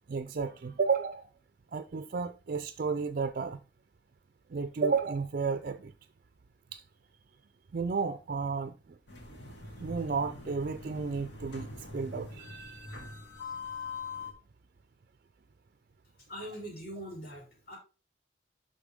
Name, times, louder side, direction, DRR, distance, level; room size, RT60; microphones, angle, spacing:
voice 1, 0.1-1.3 1.7-3.6 4.5-5.9 6.7-6.8 7.7-8.7 9.8-12.9, right 5 dB, 50° right, 0.4 m, -32 dB
sound 1, 9.1-14.3, left 3 dB, 70° left, 2.3 m, -43 dB
voice 2, 16.3-17.8, equal, 55° left, 3.9 m, -42 dB
11.0 x 3.8 x 3.5 m
head